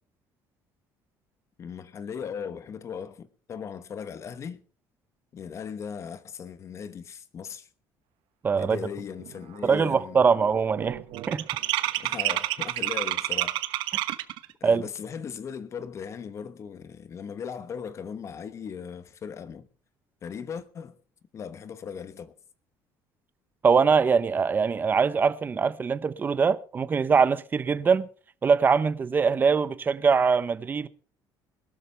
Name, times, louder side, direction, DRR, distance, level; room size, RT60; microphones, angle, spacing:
voice 1, 1.6-4.6 5.3-7.7 8.6-10.2 12.0-13.6 14.6-19.7 20.2-21.0 21.3-22.3, left 7 dB, 35° left, 1.1 m, -38 dB
voice 2, 8.4-8.8 9.6-11.0 11.3-11.4 14.6-14.8 23.6-28.1 28.4-30.9, right 5 dB, 25° right, 0.7 m, -22 dB
sound 1, 8.8-8.9 9.2-9.6 9.8-14.5, right 16 dB, 75° right, 1.1 m, -29 dB
20.5 x 12.5 x 3.3 m
cardioid pair, 150°, 8 cm